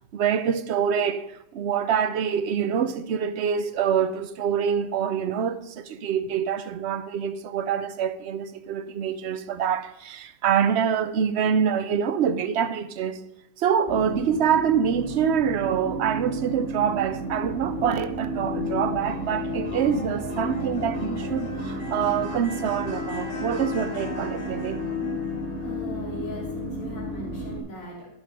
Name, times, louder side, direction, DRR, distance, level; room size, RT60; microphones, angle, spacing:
voice 1, 0.1-13.2 13.6-24.8, right 8 dB, 60° right, 0.7 m, -25 dB
sound 1, 13.9-27.6, left 1 dB, 20° left, 2.3 m, -32 dB
voice 2, 25.6-28.1, equal, 50° left, 3.0 m, -40 dB
11.5 x 8.1 x 5.3 m
omnidirectional pair, 1.8 m